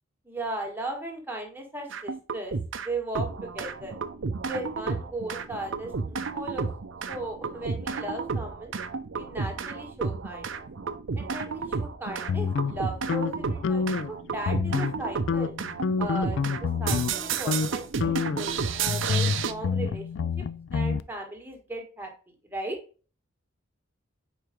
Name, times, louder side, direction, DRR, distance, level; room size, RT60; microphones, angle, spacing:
voice 1, 0.2-3.9 4.5-6.7 7.1-8.7 9.1-10.6 11.1-15.6 16.0-16.4 16.8-20.3 20.7-22.8, right 2 dB, 10° right, 1 dB, 1.4 m, -37 dB
sound 1, 1.9-2.9 3.1-19.5, right 5 dB, 65° right, 0.6 m, -32 dB
sound 2, 12.3-14.1 14.4-15.0 15.3-17.2 17.5-17.7 18.0-21.0, left 5 dB, 65° left, 0.3 m, -28 dB
4.8 x 4.7 x 4.9 m, 0.37 s
head